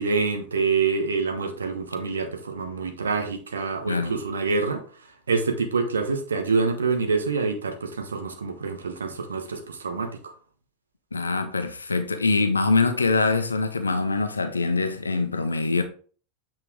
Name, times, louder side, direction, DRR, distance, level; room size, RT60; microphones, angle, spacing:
voice 1, 0.0-4.8 5.3-10.3, right 4 dB, 75° right, 1.3 m, -26 dB
voice 2, 3.9-4.2 11.1-15.8, left 3 dB, 80° left, 0.9 m, -24 dB
8.4 x 4.5 x 3.7 m
figure-of-eight pair, 85°, 0 cm